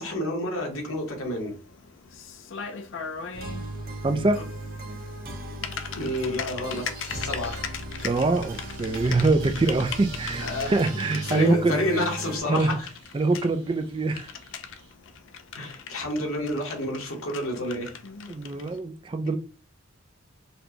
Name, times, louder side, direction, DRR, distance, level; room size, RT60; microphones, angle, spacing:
voice 1, 0.0-1.5 5.9-7.7 10.4-12.9 15.5-17.9, left 1 dB, 85° left, 1.1 m, -30 dB
Typing, 0.7-18.8, left 6 dB, 60° left, 0.4 m, -40 dB
sound 1, 3.3-12.4, right 1 dB, 45° right, 0.7 m, -37 dB
voice 2, 4.0-4.4 8.0-12.0 12.4-12.8 13.1-14.3 18.3-19.4, right 3 dB, 25° right, 0.3 m, -24 dB
sound 2, 6.6-7.6 7.9-11.6 12.3-14.9, right 4 dB, 65° right, 1.6 m, -47 dB
4.2 x 2.2 x 2.9 m
head